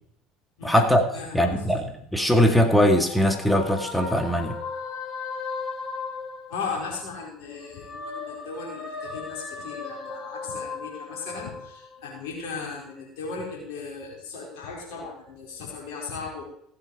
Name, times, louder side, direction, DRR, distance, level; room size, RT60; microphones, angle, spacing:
voice 1, 0.6-1.0 1.3-4.5, equal, ahead, 5 dB, 2.1 m, -21 dB
voice 2, 1.1-1.6 6.5-16.5, left 4 dB, 70° left, -3 dB, 4.5 m, -37 dB
sound 1, 2.2-7.1 7.5-12.3, left 4 dB, 45° left, 5.5 m, -37 dB
15.0 x 8.1 x 4.8 m, 0.69 s
hypercardioid pair, 70°, 0 cm